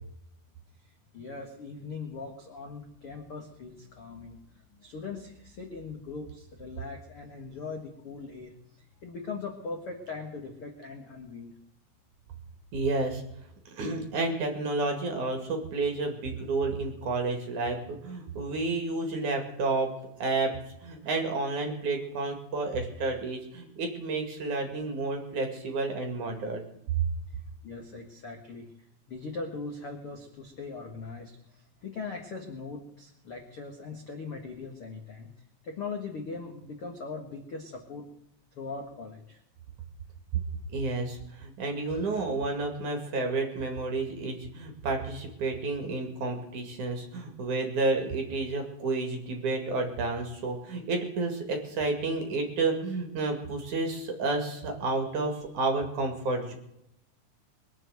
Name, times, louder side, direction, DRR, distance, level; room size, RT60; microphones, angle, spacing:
voice 1, 0.8-11.5 27.3-38.1 38.5-39.4, left 4 dB, 70° left, 2 dB, 1.3 m, -40 dB
voice 2, 12.7-13.2 13.7-19.9 20.2-20.5 20.8-26.6 40.7-56.5, right 3 dB, 50° right, 4 dB, 3.0 m, -30 dB
22.5 x 7.7 x 7.9 m, 0.79 s
omnidirectional pair, 5.3 m